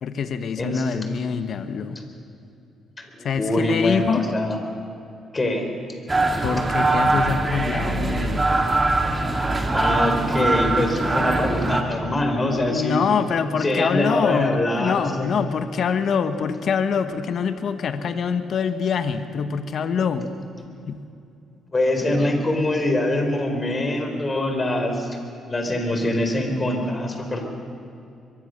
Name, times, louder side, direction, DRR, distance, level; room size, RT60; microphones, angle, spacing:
voice 1, 0.0-2.0 3.2-4.2 6.4-8.4 12.6-20.3 20.9-21.0, left 6 dB, 60° left, 9 dB, 1.3 m, -25 dB
voice 2, 0.6-1.0 3.0-4.6 5.3-5.7 9.7-13.0 13.6-15.3 21.7-25.2 25.5-27.4, left 1 dB, 25° left, 4 dB, 4.4 m, -24 dB
sound 1, 6.1-11.8, right 2 dB, 20° right, 2.5 m, -22 dB
24.0 x 22.5 x 6.6 m, 2.6 s
cardioid pair, 90°, 0 cm